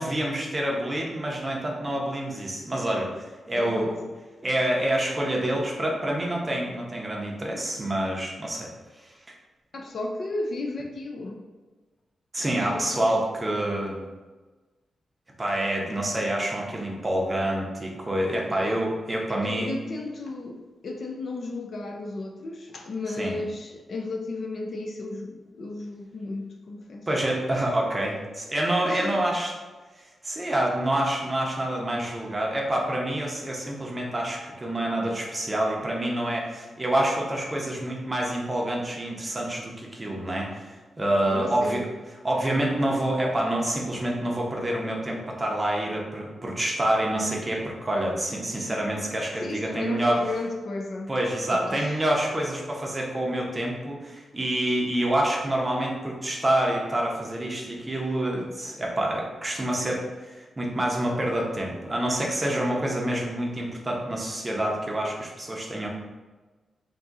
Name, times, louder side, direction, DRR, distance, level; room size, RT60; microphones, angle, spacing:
voice 1, 0.0-3.9 4.4-8.7 9.0-9.1 12.3-14.0 15.4-19.7 23.2-23.3 27.1-29.5 30.0-41.8 42.2-50.2 51.1-65.9, right 1 dB, 15° right, -2 dB, 0.6 m, -27 dB
voice 2, 3.5-3.9 9.7-11.4 12.4-13.2 18.6-18.8 19.4-27.1 28.8-29.2 41.3-41.9 49.4-51.1 51.4-52.0, left 2 dB, 45° left, 2 dB, 0.4 m, -34 dB
3.6 x 2.6 x 3.9 m, 1.3 s
wide cardioid pair, 175°, 0 cm